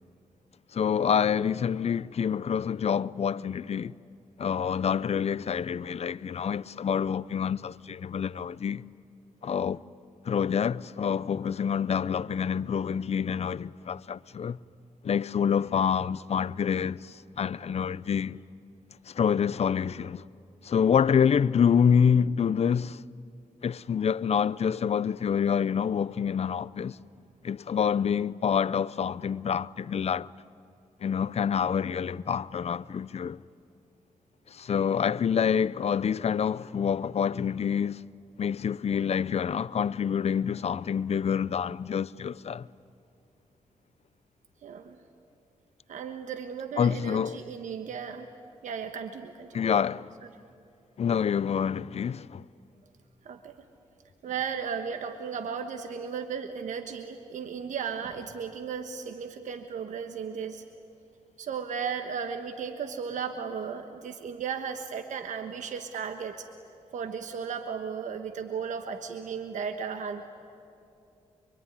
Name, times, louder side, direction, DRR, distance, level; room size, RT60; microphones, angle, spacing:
voice 1, 0.7-4.0 4.4-8.8 9.4-9.8 10.2-14.6 15.0-18.4 19.1-20.2 20.6-23.0 23.6-27.0 27.4-30.3 31.0-33.4 34.5-38.0 38.4-42.7 46.8-47.4 49.5-50.1 51.0-52.4, left 7 dB, 55° left, 0.6 m, -27 dB
voice 2, 44.6-45.0 45.9-48.3 48.6-49.6 53.2-53.6 54.2-60.6 61.4-66.5 66.9-70.2, right 6 dB, 80° right, 1.4 m, -35 dB
25.0 x 24.0 x 9.8 m
cardioid pair, 55°, 13 cm